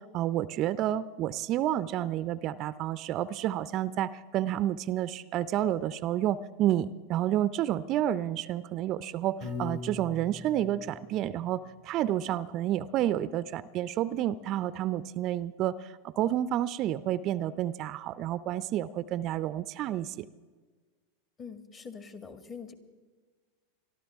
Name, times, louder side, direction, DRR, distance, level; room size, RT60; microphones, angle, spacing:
voice 1, 0.1-20.3, right 12 dB, 45° right, 16 dB, 0.5 m, -30 dB
Piano, 9.4-11.6, left 4 dB, 55° left, 5.5 m, -41 dB
voice 2, 21.4-22.7, left 5 dB, 30° left, 8 dB, 1.8 m, -44 dB
23.0 x 13.0 x 3.5 m, 1.5 s
hypercardioid pair, 95°, 0 cm